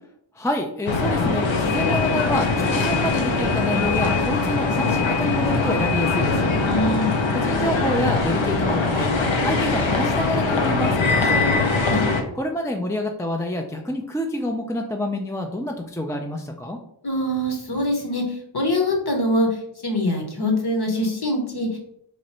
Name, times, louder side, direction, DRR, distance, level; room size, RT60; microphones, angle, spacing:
voice 1, 0.3-6.5 7.3-11.5 12.3-16.8, left 1 dB, 5° left, 2 dB, 0.3 m, -27 dB
sound 1, 0.9-12.2, left 3 dB, 75° left, 0.7 m, -22 dB
voice 2, 6.6-7.1 11.9-12.0 17.0-18.2 18.5-19.5 19.8-21.8, left 1 dB, 55° left, 2 dB, 1.0 m, -23 dB
3.1 x 2.5 x 4.2 m, 0.72 s
wide cardioid pair, 60°, 47 cm